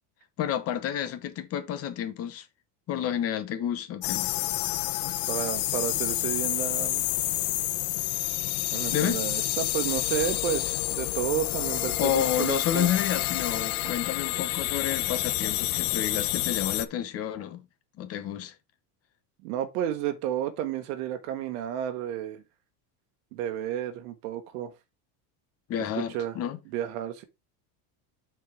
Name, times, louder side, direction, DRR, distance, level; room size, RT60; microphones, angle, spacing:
voice 1, 0.4-2.5 2.9-4.3 8.9-9.2 12.0-17.6 18.0-18.5 25.7-26.6, left 10 dB, 30° left, 1.0 m, -30 dB
sound 1, 4.0-16.9, left 17 dB, 75° left, 0.8 m, -29 dB
voice 2, 5.0-7.0 8.7-12.9 19.4-22.4 23.3-24.7 26.1-26.3 26.7-27.2, right 11 dB, 75° right, 1.1 m, -31 dB
6.1 x 4.6 x 4.6 m
cardioid pair, 165°, 46 cm